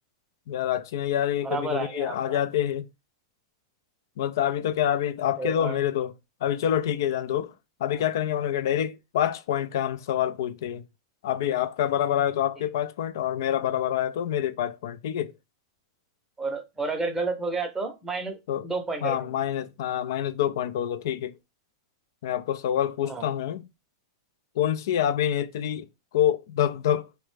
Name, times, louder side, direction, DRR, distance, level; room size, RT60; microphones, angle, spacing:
voice 1, 0.5-2.9 4.2-6.1 6.4-7.5 7.8-10.8 11.2-15.3 18.5-18.7 19.0-21.3 22.2-23.7 24.6-25.9 26.1-27.1, left 10 dB, 65° left, 0.3 m, -26 dB
voice 2, 1.4-2.4 5.4-5.8 16.4-18.3 18.6-19.3 23.1-23.3, right 3 dB, 15° right, 0.7 m, -31 dB
2.4 x 2.1 x 3.2 m
hypercardioid pair, 115°, 2 cm